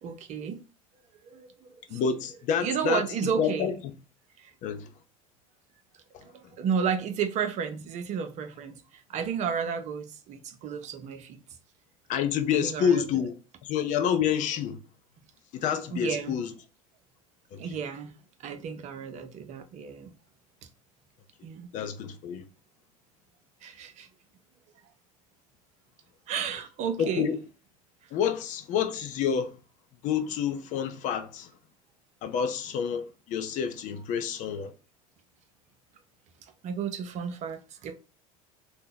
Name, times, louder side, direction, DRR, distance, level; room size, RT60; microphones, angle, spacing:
voice 1, 0.0-0.6 1.3-1.5 1.9-2.0 2.6-3.7 4.4-4.5 6.3-8.7 9.1-11.4 12.6-13.0 15.9-16.4 17.6-18.1 18.4-20.1 21.4-21.7 23.6-24.1 26.3-27.3 36.6-37.9, right 7 dB, 40° right, 0.6 m, -32 dB
voice 2, 1.9-3.7 4.6-4.9 12.1-13.3 13.6-14.8 15.5-16.5 17.5-17.8 21.7-22.4 27.0-27.4 28.1-29.5 30.0-31.5 32.2-34.7, left 8 dB, 45° left, 0.5 m, -28 dB
2.8 x 2.1 x 3.8 m
figure-of-eight pair, 75°, 19 cm